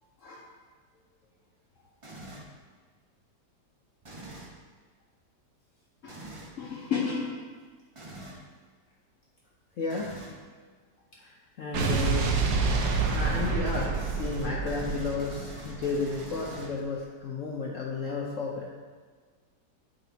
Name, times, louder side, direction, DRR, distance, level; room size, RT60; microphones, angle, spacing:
sound 1, 2.0-2.6 4.0-4.6 6.1-6.5 8.0-8.5 9.9-10.4 12.7-17.0, right 1 dB, 55° right, 0.3 m, -44 dB
voice 1, 6.6-7.4 9.8-10.1 11.2-12.3 13.1-18.7, left 4 dB, 60° left, -2 dB, 0.9 m, -32 dB
Explosion, 11.7-16.1, right 4 dB, 70° right, 1.2 m, -28 dB
12.0 x 4.0 x 2.8 m, 1.5 s
omnidirectional pair, 1.8 m